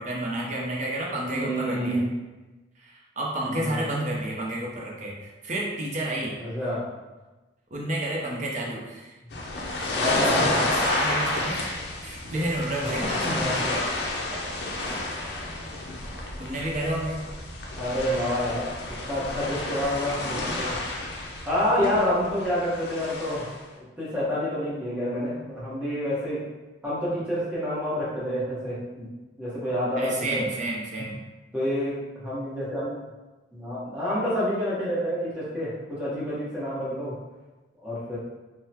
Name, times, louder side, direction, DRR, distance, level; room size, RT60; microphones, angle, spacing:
voice 1, 0.0-2.0 2.8-6.4 7.7-9.1 9.8-13.4 14.3-14.4 14.8-15.1 16.4-17.3 30.0-31.2, right 1 dB, 40° right, -2 dB, 0.6 m, -31 dB
voice 2, 1.3-2.1 3.5-3.8 6.4-6.9 9.9-10.6 12.8-12.9 13.2-13.8 17.7-18.7 19.1-20.7 21.5-23.5 23.8-26.4 26.8-29.1 29.4-30.4 31.5-33.0 33.5-37.1 37.8-38.2, equal, 10° right, -9 dB, 0.9 m, -28 dB
sound 1, 9.3-23.6, left 2 dB, 60° left, 0.5 m, -30 dB
3.6 x 2.1 x 2.8 m, 1.1 s
head